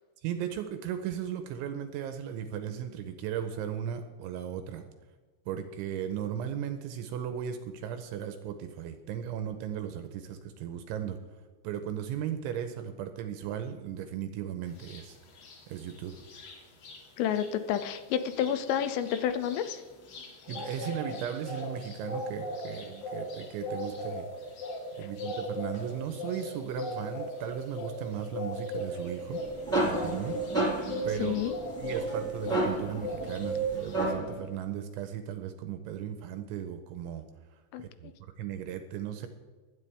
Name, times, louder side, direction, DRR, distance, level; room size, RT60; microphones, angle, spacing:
voice 1, 0.2-4.8 5.5-11.2 11.6-15.2 15.7-16.3 20.5-24.3 25.0-29.4 29.7-30.4 30.7-37.2 37.8-39.3, right 9 dB, 85° right, 8 dB, 2.8 m, -36 dB
sound 1, 14.8-15.0 15.4-17.0 17.3-17.5 17.7-32.8 33.0-34.1, right 1 dB, 60° left, 4.0 m, -37 dB
voice 2, 17.2-19.8 31.2-31.5 37.7-37.8, left 9 dB, 85° left, 10 dB, 3.1 m, -29 dB
sound 2, 29.2-34.4, right 1 dB, ahead, 2.2 m, -32 dB
23.5 x 9.2 x 3.4 m, 1.4 s
omnidirectional pair, 5.9 m